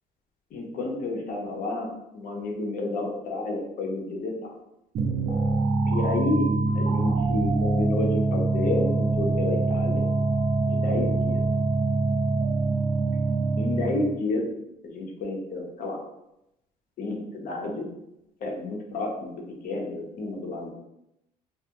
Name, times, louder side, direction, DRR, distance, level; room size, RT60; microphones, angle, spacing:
voice 1, 0.5-4.6 5.9-6.5 6.7-10.1 10.7-11.4 13.6-14.5 14.8-16.0 17.0-17.9 18.4-20.7, left 2 dB, 55° left, 0 dB, 0.7 m, -30 dB
sound 1, 4.9-14.2, right 3 dB, 45° right, 0.4 m, -24 dB
2.3 x 2.0 x 2.8 m, 0.85 s
cardioid pair, 110°, 17 cm